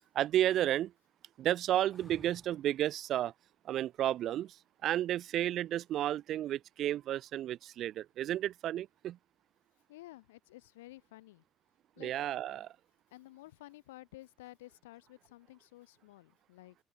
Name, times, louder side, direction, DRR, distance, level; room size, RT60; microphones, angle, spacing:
voice 1, 0.1-0.9 1.4-3.3 3.6-4.6 4.8-9.2 12.0-12.7, right 12 dB, 65° right, 0.5 m, -32 dB
sound 1, 1.9-2.8 5.4-6.0, equal, 5° left, 4.1 m, -57 dB
voice 2, 9.9-11.4 12.0-12.1 13.1-16.8, left 18 dB, 90° left, 5.4 m, -53 dB
open air
hypercardioid pair, 60°, 0 cm